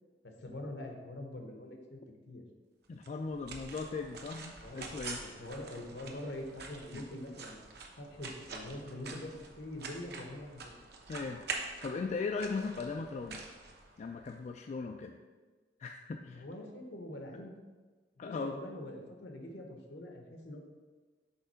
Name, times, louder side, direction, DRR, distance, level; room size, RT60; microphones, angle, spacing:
voice 1, 0.2-2.0 2.3-2.4 4.6-4.9 5.2-7.6 8.0-10.7 16.3-17.5 18.2-20.6, left 1 dB, 70° left, 3 dB, 1.0 m, -44 dB
voice 2, 2.9-5.5 6.9-7.0 11.1-13.4 14.0-15.2 15.8-16.4 18.2-18.6, left 4 dB, 40° left, 4 dB, 0.3 m, -38 dB
sound 1, 3.0-14.3, right 4 dB, 65° right, 0.9 m, -46 dB
5.6 x 3.7 x 5.6 m, 1.3 s
head